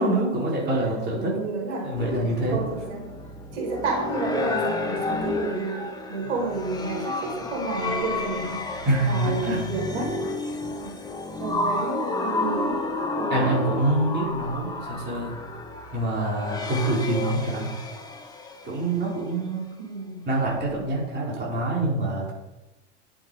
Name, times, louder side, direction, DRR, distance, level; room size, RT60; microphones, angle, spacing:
voice 1, 0.0-1.3 1.8-2.6 8.9-9.6 13.3-15.4 15.9-17.7 18.6-19.7 20.3-22.3, right 2 dB, 30° right, -4 dB, 4.5 m, -25 dB
voice 2, 1.2-3.1 3.5-8.6 9.0-10.1 10.8-10.9 11.4-12.9 13.2-13.7 19.8-20.2, right 3 dB, 80° right, 0 dB, 4.3 m, -31 dB
sound 1, 1.9-19.3, left 3 dB, 10° left, 1.5 m, -31 dB
11.0 x 8.1 x 5.0 m, 1.0 s
hypercardioid pair, 110°, 35 cm